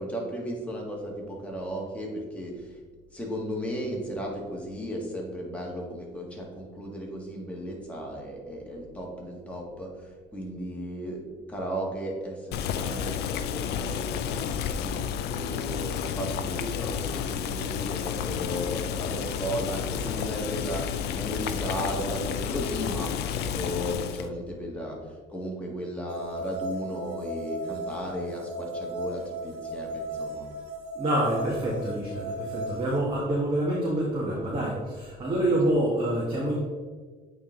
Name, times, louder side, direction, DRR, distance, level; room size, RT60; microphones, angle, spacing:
voice 1, 0.0-2.7 3.1-9.9 10.3-11.2 11.5-14.9 15.3-20.8 21.1-25.0 25.3-30.5, equal, 5° left, -2 dB, 1.6 m, -35 dB
Boiling, 12.5-24.3, left 8 dB, 75° left, 0.5 m, -31 dB
sound 1, 26.1-33.0, right 1 dB, 75° right, 1.4 m, -36 dB
voice 2, 30.9-36.6, right 1 dB, 30° right, -5 dB, 1.6 m, -27 dB
8.4 x 3.6 x 3.8 m, 1.5 s
cardioid pair, 110°, 17 cm